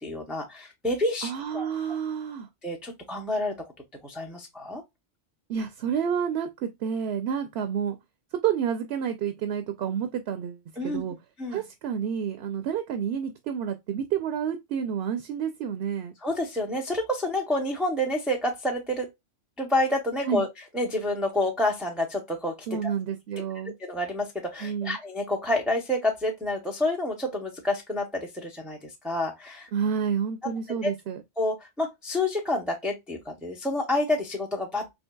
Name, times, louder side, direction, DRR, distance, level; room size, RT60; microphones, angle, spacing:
voice 1, 0.0-1.7 2.6-3.5 4.0-4.8 10.8-11.0 11.4-11.6 16.2-19.1 19.6-20.5 20.7-22.6 22.8-22.9 23.8-29.7 30.7-30.9 31.4-34.9, left 1 dB, ahead, 0.5 m, -28 dB
voice 2, 1.2-2.5 5.5-8.0 8.4-11.2 11.5-16.1 20.3-20.4 22.7-23.8 24.6-25.0 29.7-31.2, right 8 dB, 70° right, 0.8 m, -29 dB
4.4 x 3.0 x 2.2 m
omnidirectional pair, 1.2 m